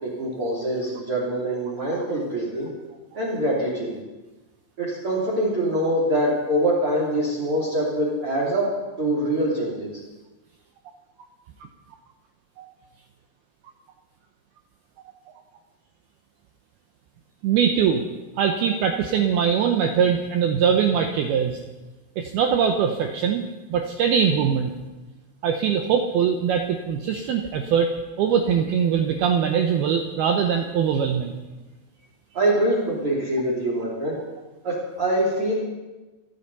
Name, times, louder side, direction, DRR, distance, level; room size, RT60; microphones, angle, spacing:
voice 1, 0.0-2.7 3.1-3.9 4.8-8.7 9.0-9.9 32.3-34.2 34.6-35.5, right 1 dB, 30° right, -7 dB, 3.3 m, -24 dB
voice 2, 17.4-18.0 18.4-21.6 22.2-24.7 25.4-27.9 28.2-31.4, right 7 dB, 90° right, 4 dB, 2.2 m, -22 dB
29.5 x 9.9 x 4.2 m, 1.2 s
omnidirectional pair, 5.6 m